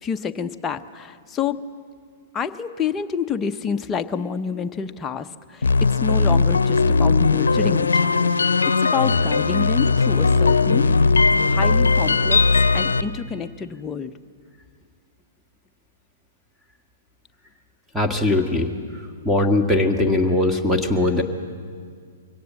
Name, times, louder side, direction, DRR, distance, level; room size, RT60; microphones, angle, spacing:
voice 1, 0.0-1.7 2.3-10.9 11.5-14.1, left 6 dB, 20° left, 7 dB, 0.8 m, -28 dB
sound 1, 5.6-13.0, left 4 dB, 85° left, 0.7 m, -18 dB
voice 2, 17.9-18.7 19.2-21.2, left 2 dB, ahead, 3 dB, 1.7 m, -20 dB
23.5 x 17.5 x 7.5 m, 2.1 s
hypercardioid pair, 120°, 0 cm